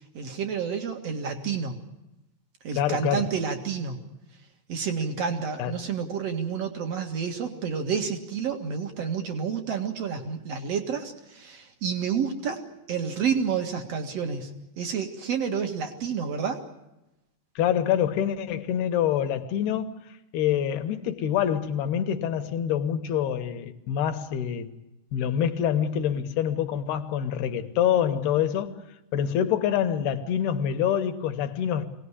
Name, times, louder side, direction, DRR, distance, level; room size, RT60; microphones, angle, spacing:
voice 1, 0.1-1.7 2.6-4.0 4.7-12.6 12.9-14.5 14.8-16.6, right 6 dB, 50° right, 2.3 m, -29 dB
voice 2, 2.8-3.3 5.6-5.7 17.6-20.0 20.3-24.7 25.1-28.8 29.1-31.9, left 9 dB, 70° left, 3.1 m, -26 dB
24.0 x 18.5 x 9.9 m
omnidirectional pair, 4.9 m